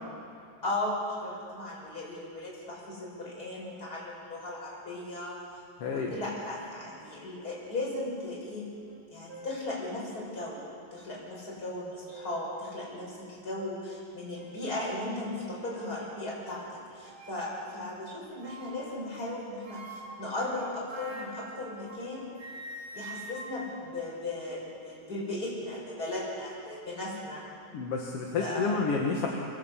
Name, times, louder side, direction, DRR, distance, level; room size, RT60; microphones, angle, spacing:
voice 1, 0.6-5.4 5.8-8.7 9.1-10.6 10.9-16.7 16.9-22.3 22.9-27.4 28.4-28.8, left 2 dB, 25° left, -5 dB, 6.9 m, -36 dB
voice 2, 5.8-6.2 27.7-29.3, left 4 dB, 50° left, 0 dB, 2.2 m, -29 dB
sound 1, 8.9-9.0 9.3-9.7 10.4-10.5 11.8-12.5 13.0-13.1 13.6-13.7 14.3-14.6 15.3-16.0 17.0-17.5 18.4-19.0 19.6-22.1 22.4-24.7, right 1 dB, 55° right, 4.2 m, -45 dB
24.0 x 16.5 x 8.4 m, 2.5 s
omnidirectional pair, 3.9 m